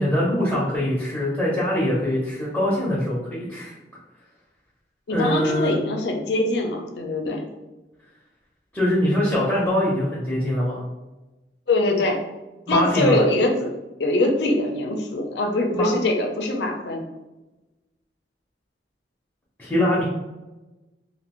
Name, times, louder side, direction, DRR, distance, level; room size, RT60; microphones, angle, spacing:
voice 1, 0.0-3.7 5.1-5.8 8.7-10.8 12.7-13.2 15.7-15.9 19.6-20.0, left 1 dB, 10° left, -7 dB, 0.7 m, -23 dB
voice 2, 5.1-7.4 11.7-12.2 12.7-13.7 14.0-17.1, left 2 dB, 70° left, 3 dB, 0.5 m, -23 dB
2.9 x 2.5 x 3.0 m, 1.1 s
head